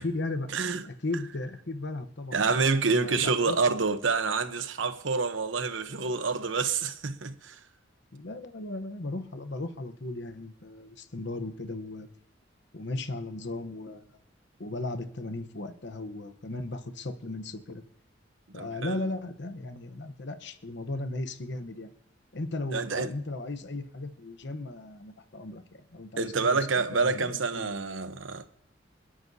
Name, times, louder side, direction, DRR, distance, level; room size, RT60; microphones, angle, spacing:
voice 1, 0.0-0.5 0.9-2.4 2.9-3.6 8.1-12.1 12.7-14.1 14.6-17.8 18.5-21.9 22.3-26.6 26.9-27.7, left 2 dB, 65° left, 1.0 m, -36 dB
voice 2, 2.3-7.6 18.6-19.0 22.7-23.1 26.2-28.4, right 4 dB, 80° right, 1.0 m, -27 dB
29.0 x 9.9 x 2.8 m
head